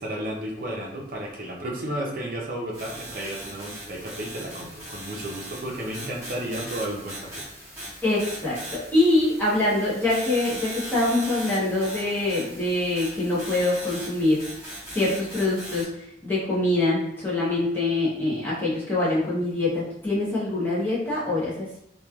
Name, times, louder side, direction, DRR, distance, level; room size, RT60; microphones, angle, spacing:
voice 1, 0.0-7.4, right 1 dB, 50° right, -2 dB, 0.5 m, -33 dB
sound 1, 2.7-15.8, right 1 dB, 15° right, 1.3 m, -39 dB
voice 2, 8.0-14.4 14.9-15.9 16.2-21.8, left 2 dB, 10° left, -9 dB, 0.7 m, -24 dB
3.0 x 2.2 x 2.3 m, 0.76 s
head